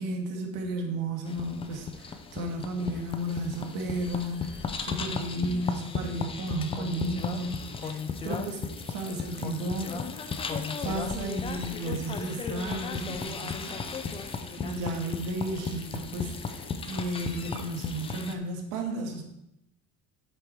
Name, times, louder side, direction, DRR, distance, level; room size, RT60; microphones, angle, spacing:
voice 1, 0.0-10.0 10.8-13.9 14.6-19.2, right 1 dB, 75° right, 2 dB, 2.0 m, -33 dB
sound 1, 1.3-18.3, left 5 dB, 20° left, 0.5 m, -35 dB
8.7 x 7.6 x 4.7 m, 0.85 s
cardioid pair, 180°, 31 cm